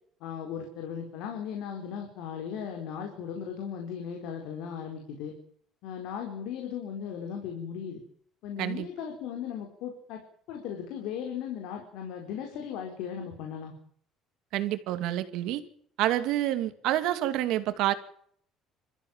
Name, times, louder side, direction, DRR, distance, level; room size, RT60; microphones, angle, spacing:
voice 1, 0.2-5.3 5.8-8.0 8.4-10.2 10.5-13.7, left 8 dB, 75° left, 3 dB, 4.5 m, -37 dB
voice 2, 14.5-15.6 16.0-17.9, right 13 dB, 70° right, 10 dB, 2.3 m, -28 dB
27.5 x 14.5 x 7.4 m, 0.64 s
cardioid pair, 165°, 0 cm